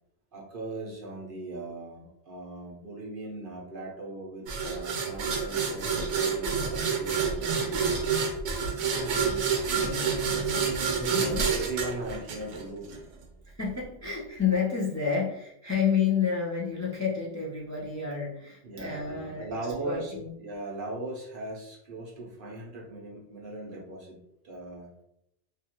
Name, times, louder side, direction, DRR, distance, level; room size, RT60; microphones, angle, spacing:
voice 1, 0.3-8.1 11.0-13.0 18.6-20.1 20.4-24.2 24.4-24.9, right 2 dB, 50° right, -2 dB, 0.8 m, -39 dB
sound 1, 4.5-13.0, right 6 dB, 85° right, 1.0 m, -28 dB
voice 2, 8.8-11.5 13.4-19.5 19.8-20.3, left 6 dB, 25° left, -5 dB, 0.3 m, -30 dB
2.8 x 2.4 x 2.8 m, 0.80 s
omnidirectional pair, 1.2 m